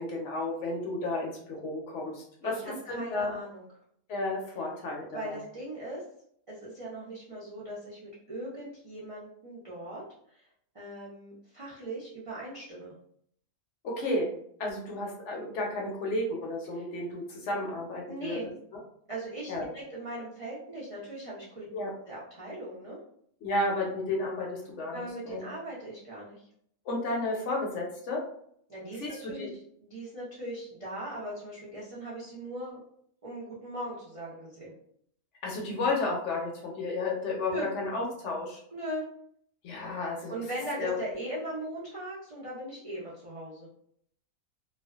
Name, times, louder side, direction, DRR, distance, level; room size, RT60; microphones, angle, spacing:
voice 1, 0.0-2.6 2.9-3.3 4.1-5.4 13.8-14.3 14.6-18.5 19.5-19.7 21.7-21.9 23.4-25.4 26.9-28.2 29.0-29.5 35.4-38.6 39.6-40.4 40.8-40.9, left 2 dB, 65° left, -1 dB, 0.8 m, -32 dB
voice 2, 2.4-3.7 5.1-6.0 6.5-10.0 10.3-10.4 10.7-12.9 16.7-16.8 18.1-18.5 19.1-21.7 22.1-23.0 24.9-26.5 28.7-29.5 29.8-32.8 33.2-34.7 37.5-37.7 38.7-39.1 40.3-43.7, right 1 dB, 60° right, -8 dB, 0.3 m, -39 dB
2.4 x 2.2 x 2.3 m, 0.67 s
omnidirectional pair, 1.5 m